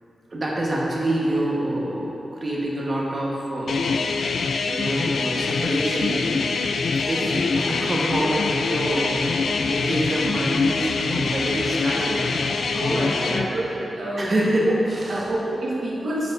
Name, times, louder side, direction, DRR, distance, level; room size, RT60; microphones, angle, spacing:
voice 1, 0.3-4.0 4.7-6.5 7.1-9.4 9.7-12.2 12.7-13.6 14.2-15.3, right 1 dB, 35° right, -4 dB, 1.2 m, -26 dB
sound 1, 3.7-13.5, left 4 dB, 65° left, 0.4 m, -24 dB
Sink (filling or washing), 7.4-13.0, left 1 dB, 50° left, 1.7 m, -40 dB
voice 2, 12.7-14.3 15.1-16.3, right 1 dB, 70° right, -6 dB, 1.2 m, -28 dB
13.0 x 4.8 x 2.6 m, 2.9 s
wide cardioid pair, 160°, 0 cm